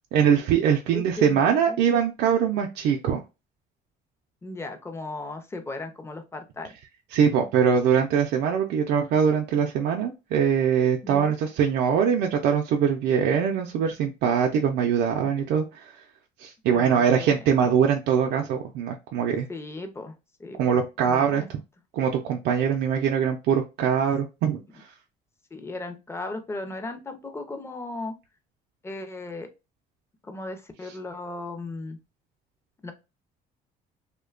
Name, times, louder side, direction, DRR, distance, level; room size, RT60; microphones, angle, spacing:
voice 1, 0.1-3.2 7.1-15.9 16.4-19.5 20.6-21.4 21.9-24.9, right 7 dB, 80° right, 2 dB, 0.4 m, -23 dB
voice 2, 0.9-1.8 4.4-6.7 11.0-11.3 16.7-17.4 19.5-20.8 21.1-21.5 25.5-28.1 28.8-29.5 30.2-32.0 32.8-32.9, left 2 dB, 15° left, 7 dB, 0.5 m, -36 dB
2.7 x 2.1 x 2.3 m, 0.26 s
cardioid pair, 110°, 17 cm